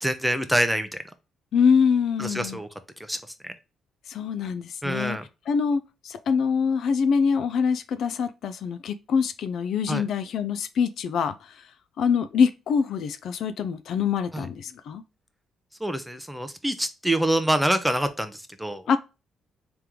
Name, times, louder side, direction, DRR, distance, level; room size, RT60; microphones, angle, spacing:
voice 1, 0.0-0.9 2.2-2.7 3.1-3.2 3.4-3.5 4.8-5.2 9.9-10.0 14.3-14.5 15.8-18.8, right 1 dB, 5° right, 0.6 m, -25 dB
voice 2, 1.5-2.6 4.1-5.2 5.5-11.6 12.0-15.0 18.9-19.0, left 6 dB, 70° left, 0.4 m, -24 dB
3.4 x 3.0 x 3.6 m
cardioid pair, 90°, 0 cm